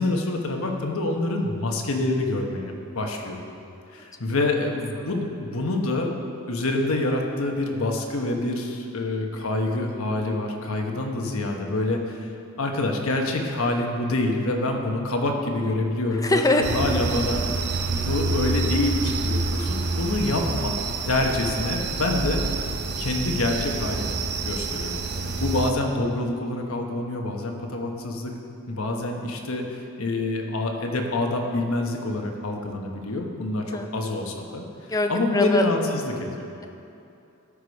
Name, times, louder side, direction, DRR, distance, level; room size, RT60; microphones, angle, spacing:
voice 1, 0.0-3.4 3.9-6.1 6.5-12.3 12.6-17.6 17.9-20.8 21.0-22.4 23.0-28.3 28.7-34.7 35.1-35.8 36.0-36.5, left 2 dB, 80° left, 2 dB, 1.1 m, -26 dB
voice 2, 16.2-16.6 21.8-21.9 33.7-33.9 34.9-35.6, left 1 dB, 15° left, 5 dB, 0.6 m, -23 dB
sound 1, 16.6-25.7, right 3 dB, 55° right, 0.7 m, -27 dB
13.0 x 5.0 x 5.3 m, 2.7 s
head